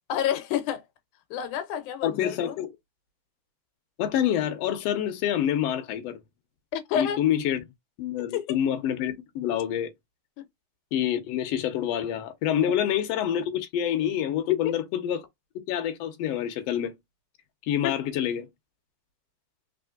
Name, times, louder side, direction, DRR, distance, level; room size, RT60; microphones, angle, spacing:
voice 1, 0.1-0.8 1.3-2.6 6.7-7.2 8.3-8.6 10.4-10.5 14.6-14.7 17.8-17.9, left 9 dB, 85° left, 2.2 m, -29 dB
voice 2, 2.0-2.7 4.0-6.2 6.9-7.6 8.0-9.9 10.9-15.3 15.7-16.9 17.7-18.5, left 10 dB, 70° left, 1.7 m, -27 dB
4.2 x 3.6 x 2.3 m
omnidirectional pair, 3.5 m